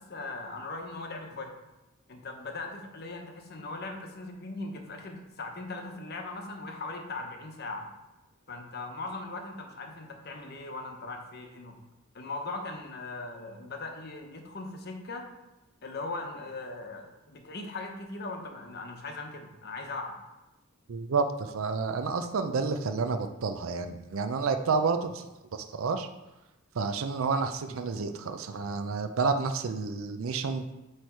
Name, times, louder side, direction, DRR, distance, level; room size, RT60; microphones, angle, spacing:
voice 1, 0.0-1.5 2.1-7.9 8.5-11.8 12.1-15.3 15.8-20.2, left 3 dB, 50° left, 4 dB, 0.9 m, -39 dB
voice 2, 20.9-25.2 25.5-26.1 26.8-30.6, right 4 dB, 85° right, 7 dB, 0.5 m, -30 dB
8.3 x 3.2 x 4.6 m, 1.0 s
head